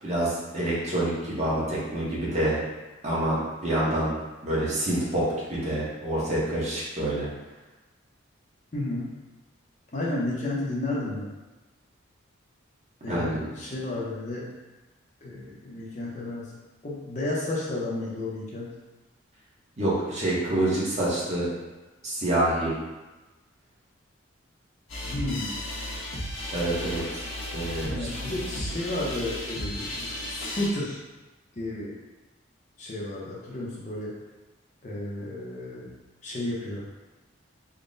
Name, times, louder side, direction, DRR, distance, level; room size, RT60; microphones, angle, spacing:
voice 1, 0.0-2.6 3.0-3.4 3.6-4.1 4.4-5.2 5.5-7.3 13.1-13.5 19.8-21.5 22.0-22.7 26.5-27.2 27.5-28.4, right 1 dB, 35° right, -7 dB, 0.9 m, -27 dB
voice 2, 8.7-9.1 9.9-11.3 13.0-14.4 15.2-16.5 16.8-18.7 25.0-25.6 27.8-31.0 31.6-31.9 32.8-34.1 34.8-35.9 36.2-36.8, left 2 dB, 35° left, -5 dB, 0.6 m, -32 dB
sound 1, 24.9-30.7, left 1 dB, 80° left, 1.1 m, -34 dB
3.7 x 2.1 x 3.8 m, 1.1 s
head